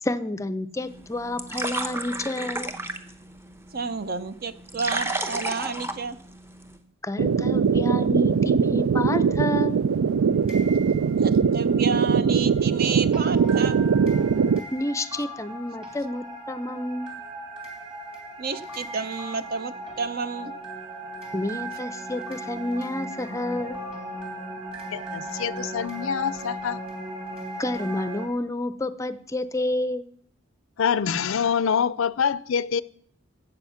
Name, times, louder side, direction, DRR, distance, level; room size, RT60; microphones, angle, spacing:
voice 1, 0.0-2.7 7.0-9.9 14.7-17.3 21.3-23.8 27.6-30.1, left 1 dB, 15° left, 0.5 m, -29 dB
sound 1, 0.8-6.8, right 2 dB, 10° right, 0.8 m, -34 dB
voice 2, 3.7-6.2 11.2-13.8 18.4-20.5, right 5 dB, 45° right, 0.7 m, -30 dB
sound 2, 7.2-14.6, right 6 dB, 85° right, 0.4 m, -21 dB
sound 3, 9.8-28.3, right 1 dB, 30° right, 2.9 m, -38 dB
voice 3, 24.9-26.8 30.8-32.8, left 7 dB, 75° left, 0.5 m, -25 dB
14.5 x 8.1 x 5.7 m
head